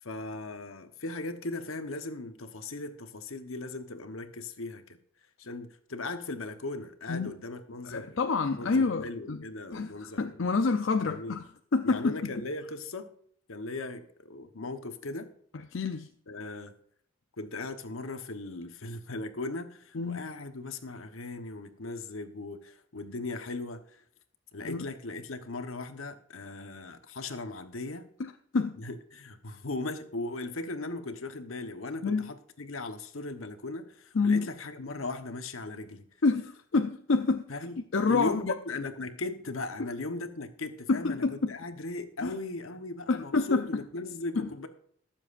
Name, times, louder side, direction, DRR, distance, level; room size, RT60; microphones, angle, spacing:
voice 1, 0.0-5.0 5.4-8.2 8.5-10.4 11.0-11.4 11.8-13.1 13.5-15.3 16.3-16.8 17.4-24.0 24.5-28.1 28.8-36.1 37.5-37.8 38.1-44.7, left 2 dB, 80° left, 1.1 m, -38 dB
voice 2, 7.8-9.4 9.7-11.5 11.7-12.3 15.5-16.1 19.9-20.3 24.6-24.8 28.2-28.8 32.0-32.3 34.1-34.5 36.2-37.5 37.9-38.5 40.9-41.5 42.2-42.3 43.1-43.7 44.4-44.5, left 4 dB, 65° left, 0.6 m, -28 dB
21.0 x 7.4 x 2.6 m
head